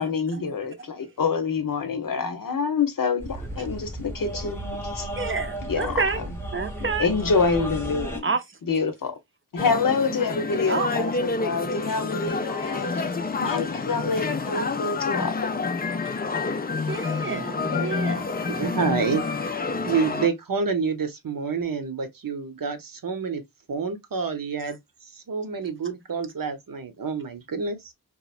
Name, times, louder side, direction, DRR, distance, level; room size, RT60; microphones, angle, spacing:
voice 1, 0.0-5.1 5.6-6.0 7.0-8.3 8.7-9.1 9.5-13.1 13.4-15.4, left 5 dB, 65° left, 0.8 m, -26 dB
sound 1, 3.2-8.2, right 1 dB, 5° left, 0.9 m, -34 dB
voice 2, 5.2-6.2 6.5-7.1 8.2-8.6 10.7-10.9 12.7-12.9 16.9-18.3, right 4 dB, 35° right, 0.6 m, -29 dB
sound 2, 9.6-20.3, left 4 dB, 25° left, 0.4 m, -28 dB
voice 3, 18.5-19.2 19.9-23.4 23.7-27.9, right 5 dB, 65° right, 0.8 m, -28 dB
3.0 x 2.5 x 2.3 m
wide cardioid pair, 85°, 37 cm